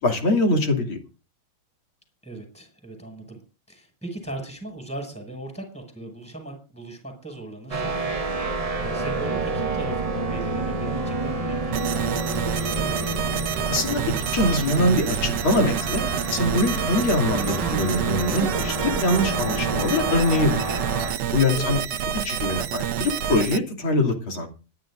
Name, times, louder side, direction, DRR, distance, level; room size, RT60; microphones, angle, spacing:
voice 1, 0.0-1.0 13.7-16.0 16.3-20.8 21.3-21.8 22.2-24.5, left 1 dB, 70° left, 2 dB, 3.6 m, -23 dB
voice 2, 2.2-3.4 3.7-8.0 8.3-13.3 21.5-21.8, right 2 dB, 5° left, 3 dB, 6.5 m, -38 dB
sound 1, 7.7-21.1, right 3 dB, 50° right, 0.4 m, -28 dB
sound 2, 11.7-23.6, right 9 dB, 65° right, 1.3 m, -28 dB
25.5 x 11.0 x 2.6 m, 0.34 s
omnidirectional pair, 2.3 m